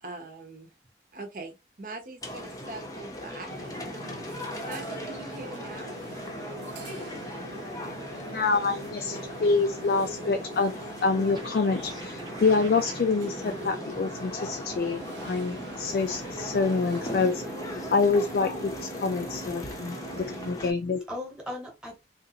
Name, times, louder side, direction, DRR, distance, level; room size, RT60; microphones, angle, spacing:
voice 1, 0.0-0.7 1.1-3.8 4.6-6.0, right 2 dB, 50° right, 0.9 m, -42 dB
sound 1, 2.2-20.7, left 1 dB, 20° left, 0.6 m, -39 dB
sound 2, 3.5-20.5, right 2 dB, 85° right, 0.7 m, -42 dB
voice 2, 8.1-10.7 11.0-17.4 17.9-21.0, left 4 dB, 60° left, 0.4 m, -26 dB
sound 3, 11.3-13.0, right 3 dB, 25° right, 0.6 m, -46 dB
voice 3, 21.1-22.1, left 1 dB, 5° right, 1.1 m, -40 dB
3.8 x 2.5 x 2.8 m
head